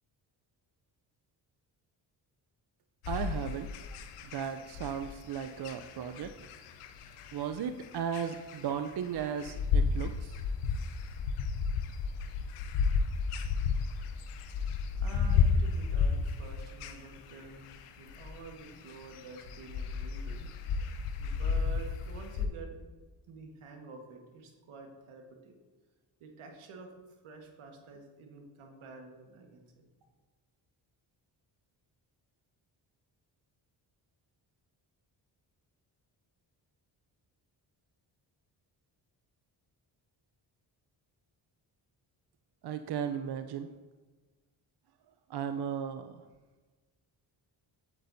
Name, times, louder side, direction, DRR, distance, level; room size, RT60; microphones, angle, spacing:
sound 1, 3.0-22.5, left 5 dB, 85° left, 0.8 m, -32 dB
voice 1, 3.1-6.3 7.3-10.4 42.6-43.7 45.3-46.2, right 8 dB, 50° right, 9 dB, 0.6 m, -36 dB
voice 2, 14.3-20.5 21.2-22.7 23.3-25.6 26.2-26.9 27.2-29.9, right 4 dB, 75° right, 3 dB, 1.5 m, -49 dB
8.6 x 7.9 x 2.7 m, 1.3 s
supercardioid pair, 50°, 50 cm